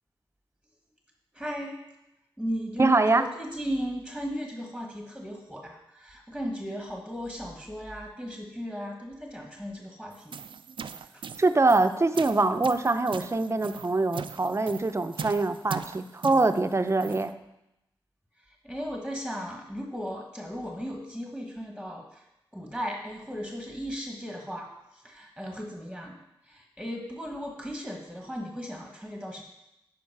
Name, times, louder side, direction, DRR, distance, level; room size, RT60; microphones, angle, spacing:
voice 1, 1.3-1.8 2.4-10.4 11.1-11.2 18.4-22.2 22.5-26.2 26.4-29.4, equal, 5° left, 0 dB, 1.4 m, -36 dB
voice 2, 2.8-3.2 11.4-17.3, right 3 dB, 35° right, 9 dB, 0.6 m, -24 dB
sound 1, 10.1-17.3, right 6 dB, 75° right, 0.4 m, -41 dB
11.5 x 5.0 x 4.7 m, 0.87 s
wide cardioid pair, 75°, 9 cm